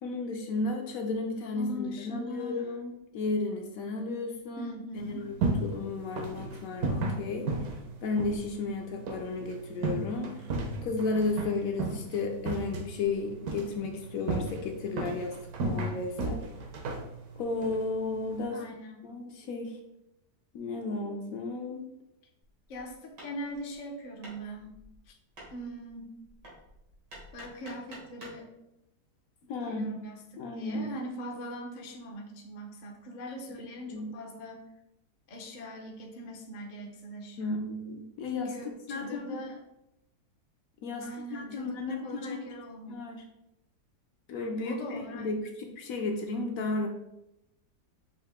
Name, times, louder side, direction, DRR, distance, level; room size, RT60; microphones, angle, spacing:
voice 1, 0.0-5.3 5.6-7.7 8.0-10.4 10.8-15.3 15.6-16.5 17.4-18.6 19.0-19.8 20.5-21.9 29.5-29.9 30.4-30.9 33.5-33.6 33.9-34.1 37.4-39.4 40.8-42.4 42.9-43.2 44.3-45.4 45.8-46.9, left 3 dB, 70° left, 3 dB, 0.9 m, -33 dB
voice 2, 1.5-2.7 4.6-5.3 18.5-19.0 22.7-24.8 25.1-25.2 25.5-26.1 27.3-28.5 29.6-30.2 30.6-34.6 35.3-37.7 38.3-39.6 41.0-43.1 44.6-45.3, equal, 55° left, 0 dB, 0.5 m, -41 dB
sound 1, 5.0-18.4, right 3 dB, 70° right, 1.1 m, -35 dB
Hammer, 22.4-28.5, right 1 dB, 90° right, 2.2 m, -51 dB
5.6 x 2.6 x 3.5 m, 0.87 s
omnidirectional pair, 1.8 m